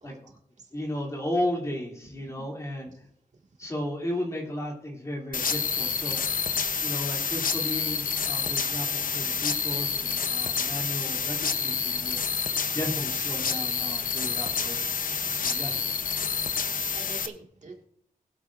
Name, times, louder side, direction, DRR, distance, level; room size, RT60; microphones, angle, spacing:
voice 1, 0.7-2.9 3.6-6.2 6.8-12.2 12.7-15.2 15.4-15.7, left 1 dB, 20° left, -1 dB, 2.8 m, -34 dB
sound 1, 5.3-17.3, left 6 dB, 65° left, 0.8 m, -28 dB
voice 2, 15.6-16.3 16.9-17.8, right 4 dB, 50° right, 2 dB, 1.9 m, -47 dB
20.5 x 8.7 x 2.5 m, 0.69 s
wide cardioid pair, 180°, 15 cm